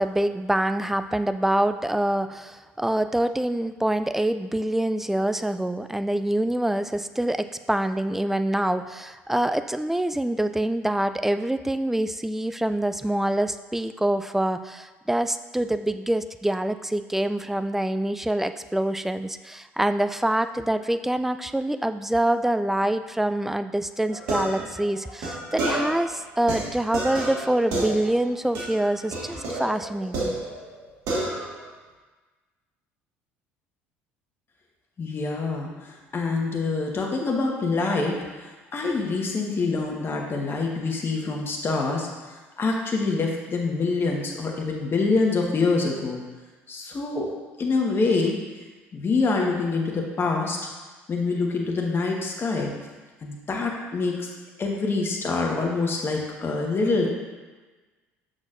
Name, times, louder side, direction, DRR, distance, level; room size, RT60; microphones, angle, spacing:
voice 1, 0.0-30.4, right 1 dB, 5° right, 10 dB, 0.3 m, -25 dB
sound 1, 24.1-26.1 26.5-28.3 28.6-28.8 29.1-30.8 31.1-31.7, right 1 dB, 60° right, 1.6 m, -30 dB
voice 2, 35.0-46.2 46.7-47.3 47.6-48.3 48.9-50.6 51.1-52.7 53.2-54.3 54.6-57.1, left 3 dB, 35° left, 0 dB, 1.2 m, -26 dB
6.3 x 6.2 x 2.5 m, 1.3 s
hypercardioid pair, 60°, 7 cm